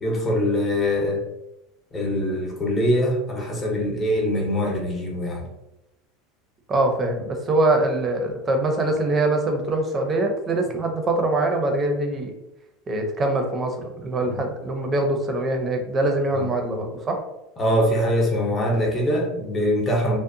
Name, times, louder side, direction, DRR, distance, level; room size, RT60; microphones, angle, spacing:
voice 1, 0.0-1.2 1.9-5.5 14.2-14.4 16.3-16.5 17.6-20.2, equal, 20° left, -2 dB, 0.7 m, -23 dB
voice 2, 6.7-12.3 12.9-17.2, right 2 dB, 25° right, 3 dB, 0.5 m, -23 dB
2.6 x 2.0 x 2.6 m, 0.91 s
supercardioid pair, 115°, 0 cm